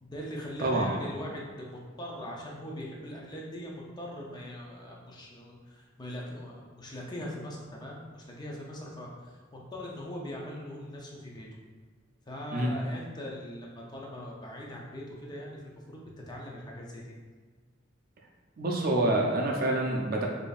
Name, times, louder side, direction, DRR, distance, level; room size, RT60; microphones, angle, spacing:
voice 1, 0.0-9.4 9.7-11.5 12.3-16.0 16.3-17.2, left 1 dB, 20° left, -2 dB, 0.5 m, -41 dB
voice 2, 0.6-0.9 12.5-12.7 18.6-20.3, right 1 dB, 45° right, -1 dB, 0.5 m, -27 dB
4.9 x 2.6 x 2.4 m, 1.5 s
head